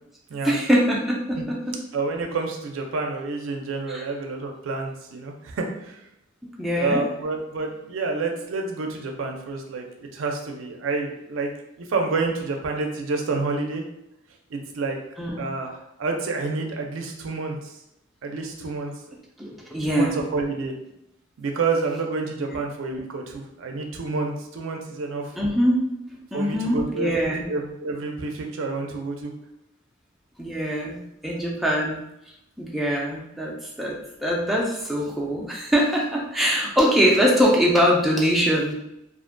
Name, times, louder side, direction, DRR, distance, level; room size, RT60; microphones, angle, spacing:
voice 1, 0.4-1.8 3.9-4.0 6.6-7.0 15.2-15.5 19.4-20.2 25.4-25.9 26.3-27.5 30.4-32.0 32.6-38.7, equal, ahead, -4 dB, 0.3 m, -23 dB
voice 2, 1.9-6.0 6.7-9.8 10.1-11.5 11.8-13.8 14.5-15.0 15.4-17.7 18.2-18.9 19.8-20.7 21.4-25.3 26.3-29.3, right 3 dB, 80° right, 3 dB, 0.4 m, -29 dB
2.4 x 2.1 x 2.5 m, 0.84 s
head